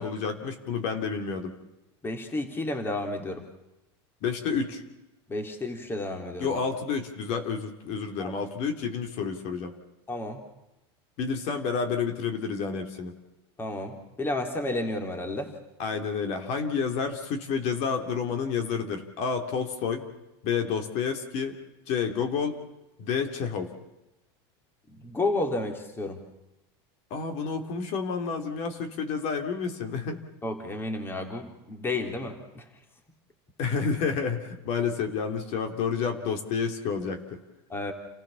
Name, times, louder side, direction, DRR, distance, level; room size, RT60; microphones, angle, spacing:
voice 1, 0.0-1.5 4.2-4.8 6.4-9.7 11.2-13.1 15.8-20.1 20.4-21.6 21.9-22.6 23.0-23.7 27.1-30.2 33.6-37.4, left 6 dB, 50° left, 5 dB, 3.2 m, -30 dB
voice 2, 2.0-3.4 5.3-6.6 8.2-8.3 10.1-10.4 13.6-15.5 24.9-26.2 30.4-32.6 37.7-37.9, left 2 dB, 15° left, 5 dB, 3.3 m, -31 dB
29.5 x 15.5 x 7.1 m, 0.96 s
supercardioid pair, 135°, 14 cm